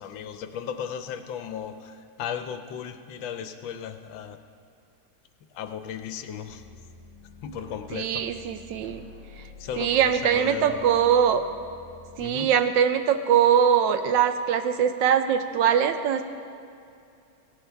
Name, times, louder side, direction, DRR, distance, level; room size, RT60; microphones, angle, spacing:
voice 1, 0.0-4.4 5.5-6.6 7.4-8.2 9.6-10.9 12.2-12.5, left 8 dB, 75° left, 8 dB, 1.4 m, -35 dB
sound 1, 6.5-12.2, left 3 dB, 25° right, 1.4 m, -48 dB
voice 2, 7.9-9.1 9.8-11.4 12.2-16.2, right 8 dB, 75° right, 9 dB, 1.3 m, -22 dB
17.0 x 11.0 x 3.4 m, 2.5 s
omnidirectional pair, 2.1 m